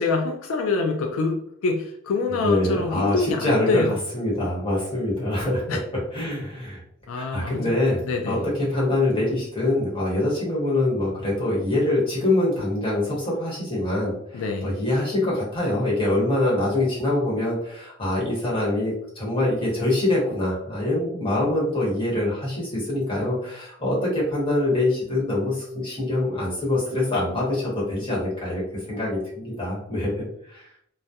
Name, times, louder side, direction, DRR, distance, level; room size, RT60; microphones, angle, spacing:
voice 1, 0.0-4.0 5.7-5.8 7.1-7.8 8.1-8.5 14.3-14.7, left 4 dB, 80° left, 3 dB, 0.3 m, -25 dB
voice 2, 2.4-3.8 4.1-5.6 6.1-6.8 7.1-28.6 28.9-30.7, left 1 dB, 25° left, -6 dB, 1.0 m, -24 dB
2.3 x 2.0 x 2.7 m, 0.70 s
head